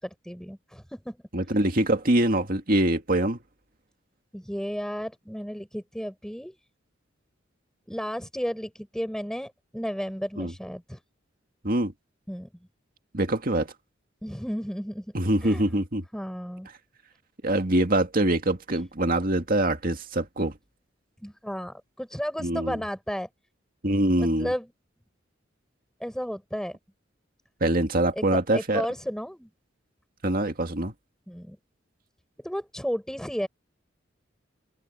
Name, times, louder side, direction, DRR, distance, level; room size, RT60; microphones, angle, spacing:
voice 1, 0.0-1.2 4.3-6.6 7.9-11.0 12.3-12.5 14.2-15.1 15.4-15.6 16.1-16.7 21.2-23.3 24.2-24.7 26.0-26.8 28.1-29.5 31.3-31.6 32.4-33.5, equal, 5° left, 7.0 m, -33 dB
voice 2, 1.3-3.4 10.4-10.5 11.6-11.9 13.1-13.7 15.1-16.0 17.4-20.6 22.4-22.8 23.8-24.5 27.6-28.9 30.2-30.9, right 1 dB, 45° right, 2.2 m, -24 dB
open air
head